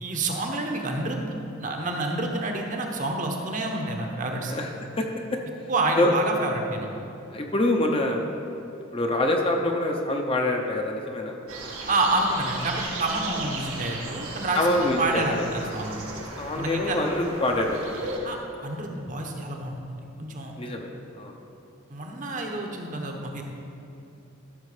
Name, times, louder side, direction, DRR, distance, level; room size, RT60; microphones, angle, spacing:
voice 1, 0.0-4.6 5.7-6.9 11.9-16.0 16.6-17.0 18.2-18.4 18.6-20.5 21.9-23.4, right 2 dB, 35° right, 2 dB, 1.0 m, -28 dB
voice 2, 7.3-8.2 8.9-11.4 14.5-15.5 16.4-17.8 20.6-20.9 21.2-21.3, left 1 dB, 25° left, 2 dB, 0.7 m, -25 dB
sound 1, 11.5-18.2, right 2 dB, 85° right, 1.6 m, -36 dB
13.5 x 6.3 x 4.9 m, 2.8 s
head